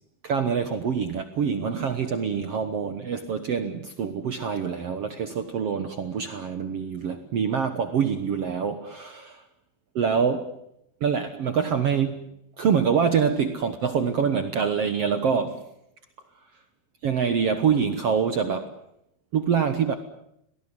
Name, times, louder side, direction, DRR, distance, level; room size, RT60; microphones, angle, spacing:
voice 1, 0.2-9.4 9.9-10.5 11.0-12.3 12.6-15.7 17.0-18.8 19.3-19.9, right 6 dB, 65° right, 1.5 m, -25 dB
23.0 x 18.5 x 9.7 m
omnidirectional pair, 4.4 m